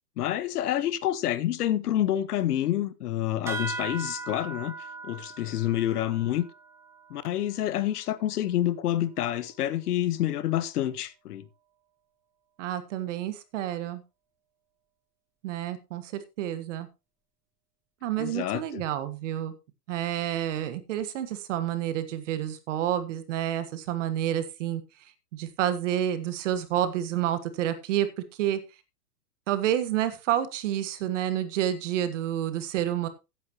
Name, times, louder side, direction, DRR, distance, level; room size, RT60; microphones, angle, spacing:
voice 1, 0.2-4.7 5.0-6.5 7.1-11.5 18.2-18.8, left 12 dB, 75° left, 1.2 m, -28 dB
sound 1, 3.5-8.4, right 3 dB, 5° right, 0.6 m, -39 dB
voice 2, 12.6-14.0 15.4-16.9 18.0-19.5 19.9-24.8 25.3-28.1 28.4-28.6 29.5-33.1, right 11 dB, 50° right, 1.6 m, -29 dB
13.5 x 9.6 x 3.0 m
supercardioid pair, 160°, 47 cm